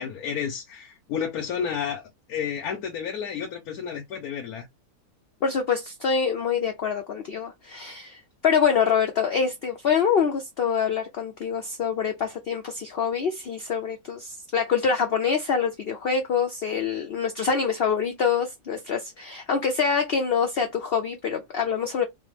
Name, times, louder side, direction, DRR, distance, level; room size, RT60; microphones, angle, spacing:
voice 1, 0.0-4.7, left 7 dB, 80° left, 1.2 m, -31 dB
voice 2, 5.4-22.1, left 6 dB, 60° left, 0.6 m, -25 dB
4.1 x 2.0 x 3.2 m
omnidirectional pair, 1.6 m